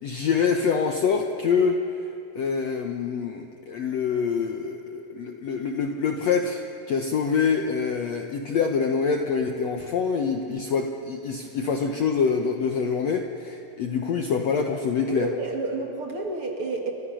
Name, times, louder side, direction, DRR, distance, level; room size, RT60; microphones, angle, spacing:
voice 1, 0.0-2.0 2.4-15.3, left 5 dB, 65° left, 4 dB, 1.7 m, -25 dB
voice 2, 15.1-16.9, right 3 dB, 40° right, 2 dB, 2.6 m, -30 dB
30.0 x 24.5 x 6.3 m, 2.7 s
omnidirectional pair, 4.2 m